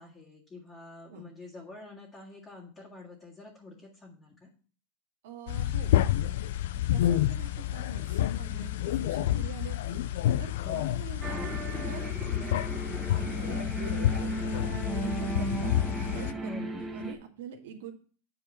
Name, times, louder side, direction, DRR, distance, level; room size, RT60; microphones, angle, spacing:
voice 1, 0.0-4.5 10.6-11.0 16.4-16.8, left 2 dB, 15° left, -6 dB, 2.0 m, -47 dB
voice 2, 5.2-5.9 6.3-6.4 6.9-10.0 10.4-11.4 11.8-15.7 16.1-17.9, right 7 dB, 75° right, 1 dB, 2.2 m, -45 dB
sound 1, 5.5-16.3, left 12 dB, 75° left, 0.5 m, -29 dB
sound 2, 11.2-17.1, right 2 dB, 10° right, 1.1 m, -35 dB
8.7 x 4.8 x 5.7 m, 0.40 s
supercardioid pair, 140°, 0 cm